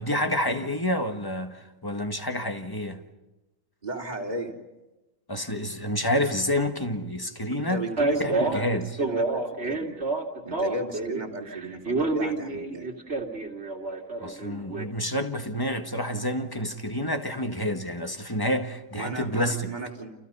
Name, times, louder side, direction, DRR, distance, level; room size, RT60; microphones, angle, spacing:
voice 1, 0.0-3.0 5.3-7.9 8.2-8.9 14.2-19.7, left 1 dB, 15° left, 1.6 m, -28 dB
voice 2, 3.8-4.6 7.7-8.6 9.0-10.0 10.4-12.9 18.9-20.1, right 1 dB, 30° right, 3.3 m, -35 dB
Male speech man speaking, 8.0-11.2 11.5-14.8, right 2 dB, 50° right, 2.6 m, -28 dB
29.5 x 29.5 x 5.5 m
omnidirectional pair, 1.4 m